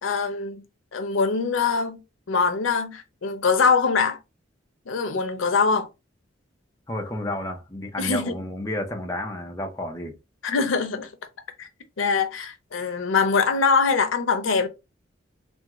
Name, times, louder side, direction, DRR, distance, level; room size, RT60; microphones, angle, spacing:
voice 1, 0.0-0.6 0.9-2.0 2.3-4.2 4.9-5.9 8.0-8.3 10.4-11.1 11.6-11.7 12.0-14.7, left 5 dB, 85° left, 0.6 m, -23 dB
voice 2, 6.9-10.2, left 1 dB, 15° left, 0.6 m, -31 dB
3.4 x 2.2 x 2.9 m
head